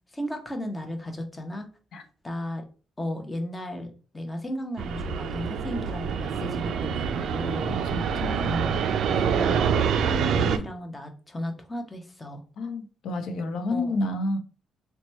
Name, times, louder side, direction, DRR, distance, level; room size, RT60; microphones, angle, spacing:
voice 1, 0.1-1.7 2.2-2.6 3.0-3.9 4.1-7.9 8.4-12.4 13.7-13.9, equal, 15° left, 0.7 m, -34 dB
Fixed-wing aircraft airplane, 4.8-10.6, right 7 dB, 75° right, 0.3 m, -26 dB
voice 2, 7.9-8.6 12.6-14.4, left 2 dB, 70° left, 0.6 m, -30 dB
2.9 x 2.2 x 4.1 m
cardioid pair, 90°, 0 cm